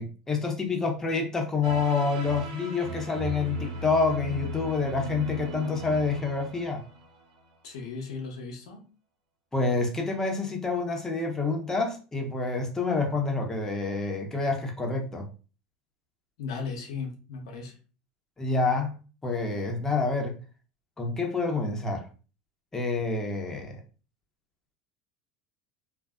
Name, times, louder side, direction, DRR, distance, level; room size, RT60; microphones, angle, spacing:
voice 1, 0.0-6.8 9.5-15.2 18.4-18.9 19.2-20.3 21.0-22.0 22.7-23.8, left 4 dB, 15° left, 0.8 m, -28 dB
sound 1, 1.6-7.4, equal, 75° right, 0.7 m, -37 dB
voice 2, 7.6-8.8 16.4-17.7, left 5 dB, 80° left, 0.8 m, -36 dB
2.6 x 2.4 x 2.3 m
hypercardioid pair, 95°, 3 cm